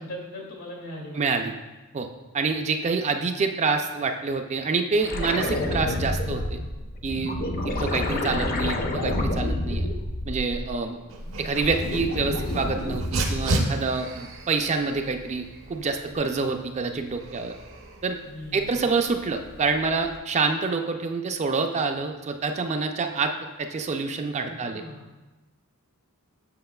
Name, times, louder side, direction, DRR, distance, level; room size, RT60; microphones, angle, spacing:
voice 1, 0.0-1.5 13.3-13.7 18.2-18.8 24.4-25.0, left 1 dB, 85° left, -1 dB, 2.0 m, -40 dB
voice 2, 1.2-1.5 1.9-2.1 2.3-6.6 7.0-7.4 7.6-9.9 10.3-11.0 11.4-17.5 18.0-18.2 18.5-23.3 23.6-24.8, right 4 dB, 30° right, 5 dB, 0.4 m, -27 dB
sound 1, 5.0-10.8 11.2-13.7 16.1-16.2, left 1 dB, 40° left, 0.6 m, -29 dB
Dog, 11.1-20.2, right 1 dB, 65° right, 0.7 m, -34 dB
7.7 x 5.9 x 2.3 m, 1.1 s
head